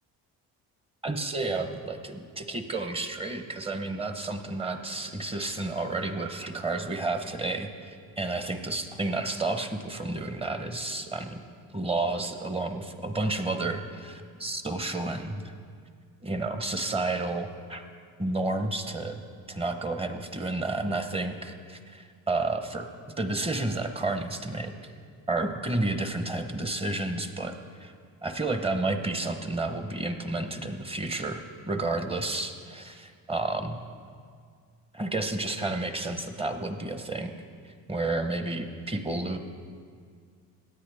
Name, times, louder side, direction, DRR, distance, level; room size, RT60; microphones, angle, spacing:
voice 1, 1.0-11.4 11.7-15.4 16.2-17.8 18.2-19.2 19.5-22.9 23.2-24.7 25.3-27.5 27.8-27.9 28.2-33.8 34.9-37.3 37.6-39.4, right 2 dB, 15° right, 7 dB, 0.9 m, -31 dB
17.0 x 9.9 x 3.4 m, 2.1 s
cardioid pair, 95°, 37 cm